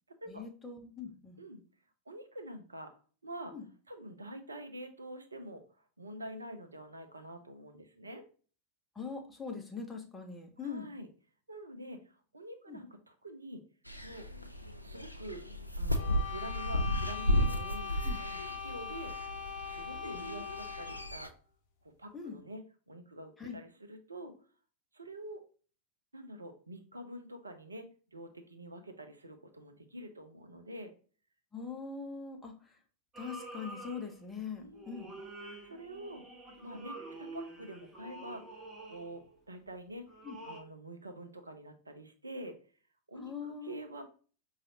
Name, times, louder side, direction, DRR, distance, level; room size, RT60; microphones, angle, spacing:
voice 1, 0.3-1.4 3.5-3.6 8.9-10.9 12.7-12.8 18.0-18.2 22.1-22.4 23.4-23.6 31.5-32.8 33.2-35.1 40.2-40.4 43.2-43.8, left 5 dB, 10° left, 1 dB, 0.8 m, -42 dB
voice 2, 2.1-2.9 3.2-3.5 3.9-8.2 10.6-11.1 11.5-13.6 14.0-14.3 14.8-15.4 15.8-18.0 18.5-19.1 19.6-21.3 21.8-24.3 24.9-25.4 26.1-30.9 34.5-35.1 35.6-36.2 36.6-39.2 39.5-40.1 40.4-42.6 43.1-44.0, right 1 dB, 80° right, 7 dB, 0.5 m, -46 dB
sound 1, 13.9-21.3, equal, 90° left, 0.3 m, -34 dB
sound 2, 15.9-21.2, left 7 dB, 45° left, 0.8 m, -42 dB
sound 3, 33.1-34.4 34.7-39.4 40.1-40.6, right 2 dB, 25° right, 0.9 m, -48 dB
5.0 x 2.4 x 2.8 m, 0.39 s
figure-of-eight pair, 90°, 0 cm